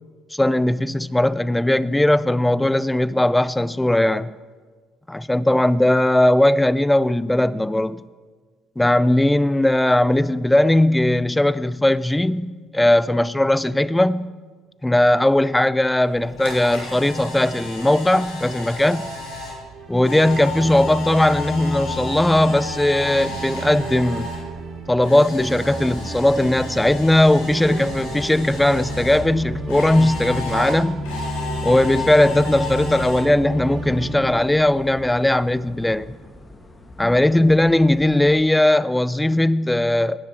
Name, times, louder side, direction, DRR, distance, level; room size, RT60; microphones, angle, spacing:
voice 1, 0.3-4.3 5.1-8.0 8.8-14.3 14.8-19.1 19.9-24.3 24.9-31.0 31.6-36.1 37.0-40.2, left 1 dB, 10° left, 0.5 m, -18 dB
Camera, 16.0-24.4 24.7-29.2 29.7-33.2, left 3 dB, 80° left, 3.7 m, -33 dB
sound 1, 19.6-35.7, right 1 dB, 55° right, 2.5 m, -33 dB
sound 2, 25.9-38.4, left 2 dB, 25° left, 1.6 m, -44 dB
17.5 x 9.9 x 4.5 m
hypercardioid pair, 60°, 0 cm